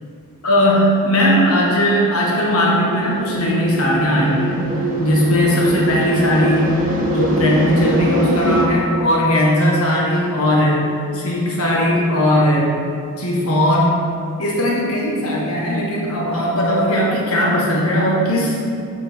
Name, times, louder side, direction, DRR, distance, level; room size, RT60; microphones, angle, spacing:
voice 1, 0.4-12.7 13.2-14.0 14.4-18.6, equal, 80° left, -3 dB, 1.3 m, -18 dB
sound 1, 3.0-8.7, right 1 dB, 40° right, 1.0 m, -22 dB
8.1 x 5.4 x 4.3 m, 2.4 s
head